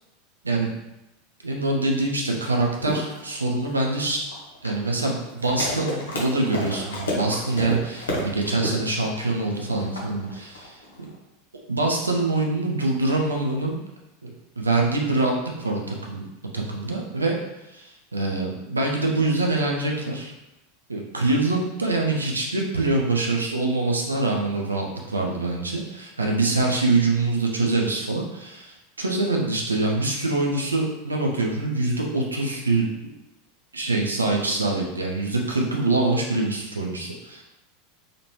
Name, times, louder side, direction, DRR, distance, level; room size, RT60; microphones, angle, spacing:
voice 1, 1.4-4.2 4.6-11.1 11.7-13.8 14.2-16.2 16.5-17.4 17.7-20.3 20.9-32.9 33.7-37.4, right 2 dB, 85° right, 0 dB, 0.5 m, -24 dB
sound 1, 2.8-11.1, left 1 dB, 75° left, 0.8 m, -31 dB
3.2 x 2.5 x 2.9 m, 0.96 s
figure-of-eight pair, 85°, 0 cm